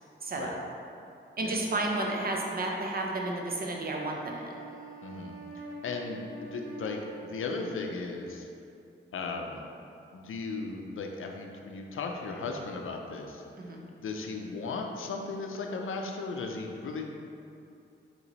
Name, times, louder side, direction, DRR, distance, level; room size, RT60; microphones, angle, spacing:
voice 1, 0.2-0.6 1.4-4.5 13.6-13.8, right 2 dB, 45° right, 0 dB, 0.6 m, -32 dB
voice 2, 1.4-1.8 5.0-8.5 9.1-9.6 10.1-13.4 14.0-17.0, left 3 dB, 75° left, 2 dB, 0.4 m, -36 dB
Wind instrument woodwind instrument, 3.8-8.1, right 2 dB, 85° right, 0.7 m, -46 dB
4.0 x 2.9 x 3.0 m, 2.6 s
cardioid pair, 55°, 21 cm